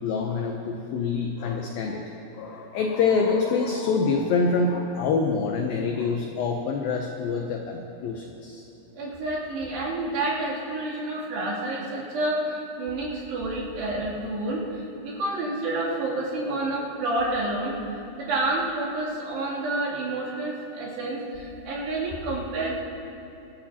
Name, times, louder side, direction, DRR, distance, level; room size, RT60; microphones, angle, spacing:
voice 1, 0.0-2.0 2.4-8.6, left 4 dB, 85° left, 2 dB, 2.0 m, -26 dB
voice 2, 8.9-17.8 18.2-22.8, right 2 dB, 70° right, -7 dB, 4.9 m, -29 dB
25.5 x 13.0 x 2.9 m, 2.9 s
omnidirectional pair, 5.2 m